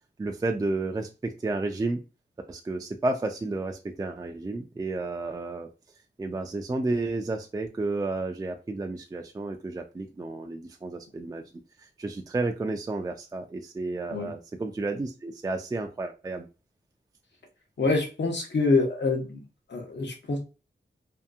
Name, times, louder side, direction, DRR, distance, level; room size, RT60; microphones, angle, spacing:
voice 1, 0.2-2.0 2.5-5.7 6.2-11.4 11.8-16.5, right 2 dB, 20° right, 4 dB, 0.3 m, -31 dB
voice 2, 17.8-19.4 19.7-20.4, left 3 dB, 65° left, 1 dB, 0.8 m, -25 dB
2.7 x 2.5 x 2.3 m, 0.30 s
wide cardioid pair, 65°, 19 cm